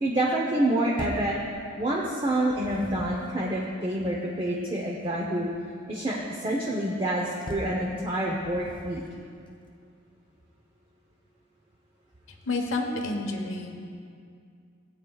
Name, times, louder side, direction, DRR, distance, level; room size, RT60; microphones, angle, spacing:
voice 1, 0.0-1.4 1.8-5.5 5.9-9.0, right 1 dB, 25° right, -3 dB, 0.7 m, -27 dB
sound 1, 1.0-1.4 2.3-3.3 7.5-7.8 8.4-9.2, left 1 dB, 25° left, 0.6 m, -40 dB
voice 2, 12.4-13.8, left 2 dB, 85° left, 3 dB, 1.1 m, -29 dB
16.5 x 8.3 x 2.3 m, 2.3 s
head